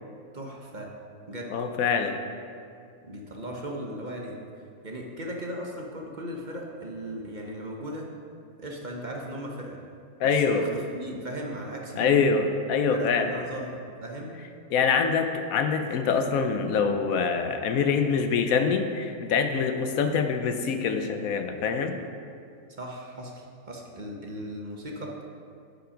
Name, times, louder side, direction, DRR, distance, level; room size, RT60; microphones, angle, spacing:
voice 1, 0.3-0.9 1.3-1.6 3.0-4.4 4.8-8.1 8.6-9.8 10.2-12.2 12.9-14.4 22.8-25.2, equal, 35° right, -1 dB, 1.0 m, -37 dB
voice 2, 1.5-2.2 10.2-10.6 12.0-13.3 14.7-22.0, left 5 dB, 90° left, 6 dB, 1.2 m, -25 dB
10.0 x 5.7 x 5.1 m, 2.3 s
omnidirectional pair, 1.4 m